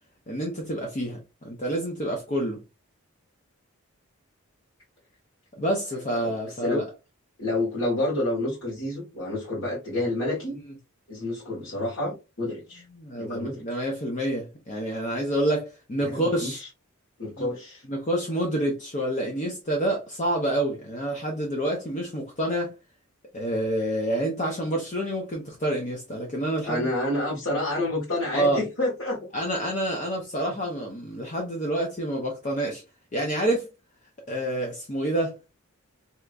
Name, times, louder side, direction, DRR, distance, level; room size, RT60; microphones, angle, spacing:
voice 1, 0.3-1.2 1.4-2.6 5.6-6.9 12.9-16.6 17.4-17.5 17.9-22.7 23.3-26.9 28.3-28.6 29.3-32.8 33.1-33.7 34.3-35.4, right 1 dB, 35° left, 0.6 m, -28 dB
voice 2, 7.4-10.6 11.1-12.8 13.2-13.6 16.0-16.7 17.2-17.8 26.6-29.3, left 1 dB, 70° left, 1.5 m, -29 dB
3.4 x 2.8 x 2.4 m
head